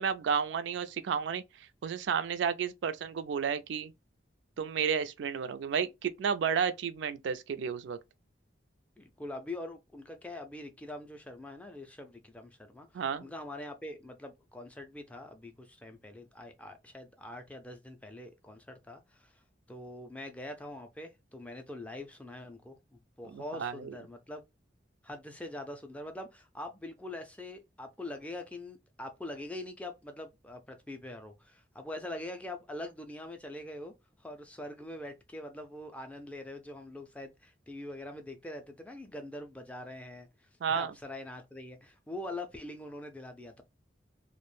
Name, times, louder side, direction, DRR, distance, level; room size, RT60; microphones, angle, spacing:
voice 1, 0.0-3.9 4.6-8.0 12.9-13.2 23.3-23.9 40.6-40.9, right 7 dB, 80° right, 0.3 m, -32 dB
voice 2, 9.0-19.4 19.7-24.4 25.0-43.6, left 1 dB, 5° left, 0.3 m, -44 dB
2.4 x 2.1 x 3.1 m
head